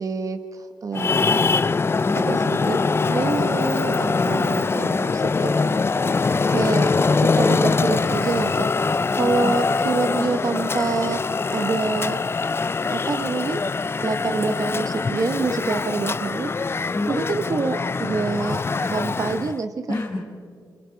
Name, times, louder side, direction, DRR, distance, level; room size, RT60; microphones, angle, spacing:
voice 1, 0.0-1.5 2.2-2.8 3.1-6.2 6.5-6.9 7.2-8.7 9.2-11.2 11.5-12.2 12.9-13.6 14.0-19.9, right 4 dB, 50° right, 8 dB, 1.2 m, -27 dB
Traffic noise roadway noise, 0.9-19.6, left 4 dB, 35° left, 0.5 m, -23 dB
voice 2, 4.2-4.9 9.1-9.6 14.1-14.2 16.9-17.2 19.9-20.2, left 2 dB, 55° left, -5 dB, 4.7 m, -30 dB
29.0 x 27.5 x 4.7 m, 2.2 s
cardioid pair, 60°, 7 cm